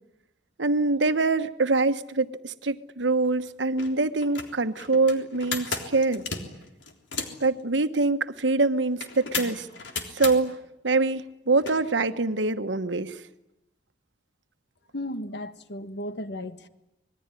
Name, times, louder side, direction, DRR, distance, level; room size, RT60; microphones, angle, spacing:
voice 1, 0.6-6.2 7.4-9.7 10.1-10.6 10.8-13.2, right 3 dB, 85° right, 1.2 m, -24 dB
sound 1, 3.2-3.3 3.7-3.9 4.2-7.5 9.0-10.4 11.6-11.8, left 4 dB, 85° left, 3.6 m, -33 dB
voice 2, 14.9-16.7, left 1 dB, 70° left, 1.6 m, -35 dB
25.5 x 21.0 x 9.8 m
head